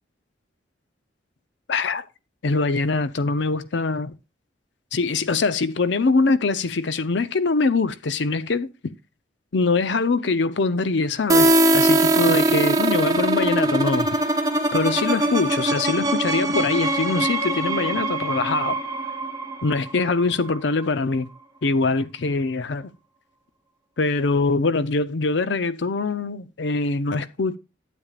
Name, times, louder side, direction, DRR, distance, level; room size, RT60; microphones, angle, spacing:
voice 1, 1.7-2.0 2.4-4.1 4.9-8.7 9.5-14.1 14.7-18.8 19.6-21.3 21.6-22.9 24.0-27.6, left 3 dB, 65° left, 0.6 m, -23 dB
sound 1, 11.3-20.9, right 2 dB, 20° right, 0.9 m, -22 dB
12.0 x 8.3 x 2.4 m
head